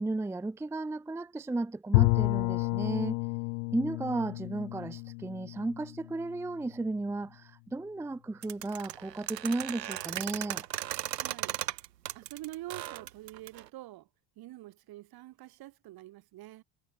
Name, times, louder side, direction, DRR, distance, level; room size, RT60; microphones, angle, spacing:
voice 1, 0.0-3.2 3.7-10.7, right 2 dB, 5° right, 0.5 m, -34 dB
Bowed string instrument, 1.9-6.7, left 37 dB, 60° left, 0.8 m, -30 dB
sound 1, 8.4-13.7, right 12 dB, 80° right, 1.2 m, -37 dB
voice 2, 11.1-11.6 12.1-14.1 14.4-16.6, right 16 dB, 45° right, 1.4 m, -46 dB
figure-of-eight pair, 55°, 49 cm